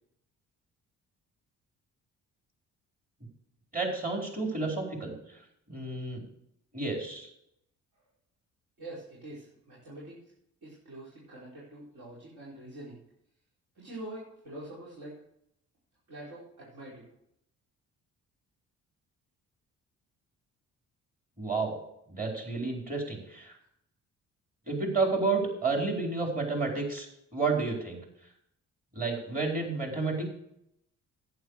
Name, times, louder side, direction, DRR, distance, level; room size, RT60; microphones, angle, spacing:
voice 1, 3.7-5.1 5.7-6.2 6.7-7.3 21.4-21.8 22.1-23.5 24.7-27.1 27.3-28.0 28.9-30.3, right 3 dB, 30° right, 0 dB, 4.4 m, -30 dB
voice 2, 8.8-10.2 10.6-13.0 13.7-15.2 16.1-17.1, right 1 dB, 70° right, -9 dB, 5.0 m, -45 dB
11.0 x 9.6 x 4.9 m, 0.76 s
cardioid pair, 90°, 30 cm